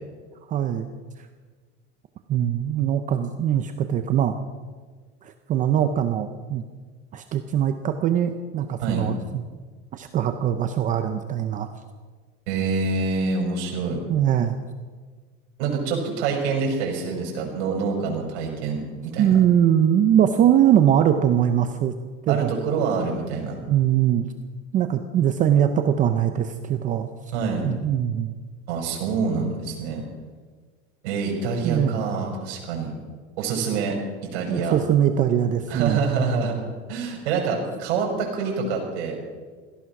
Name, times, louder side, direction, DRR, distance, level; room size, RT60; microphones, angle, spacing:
voice 1, 0.5-0.9 1.2-1.3 2.3-4.4 5.2-6.6 7.1-9.4 9.9-11.7 14.1-14.6 19.2-21.9 22.3-22.5 23.7-24.3 24.7-27.1 27.6-28.4 31.6-32.0 34.5-36.0, right 10 dB, 25° right, 8 dB, 0.6 m, -21 dB
voice 2, 12.5-14.0 15.6-19.4 22.3-23.6 27.3-27.7 28.7-30.0 31.0-32.9 33.4-34.8 35.7-36.6 36.9-39.2, right 5 dB, 75° right, 0 dB, 5.9 m, -26 dB
17.0 x 14.0 x 6.0 m, 1.5 s
cardioid pair, 170°, 33 cm